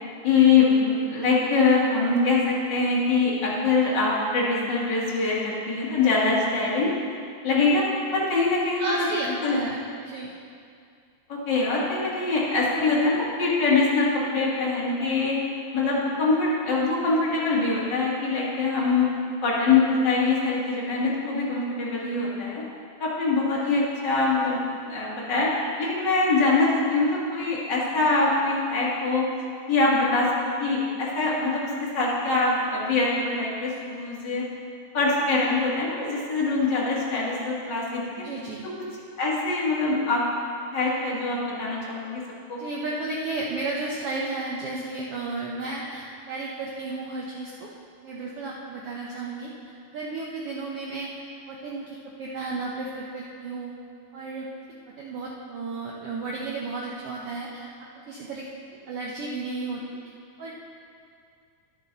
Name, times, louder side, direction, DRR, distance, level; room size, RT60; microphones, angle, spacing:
voice 1, 0.2-6.9 7.4-7.9 8.1-9.1 9.4-9.6 11.3-15.4 15.7-19.1 19.4-22.6 23.0-24.6 24.9-25.5 25.8-29.2 29.7-34.4 34.9-38.1 39.2-40.2 40.7-42.2 42.5-42.6, left 3 dB, 40° left, -6 dB, 2.1 m, -23 dB
voice 2, 8.8-10.3 23.6-23.7 38.2-38.6 42.6-47.7 48.0-49.5 49.9-51.1 51.5-53.7 54.1-54.5 55.0-57.7 58.0-58.5 58.7-59.8 60.4-60.5, right 3 dB, 90° right, -3 dB, 1.2 m, -33 dB
10.5 x 9.8 x 4.0 m, 2.3 s
omnidirectional pair, 3.8 m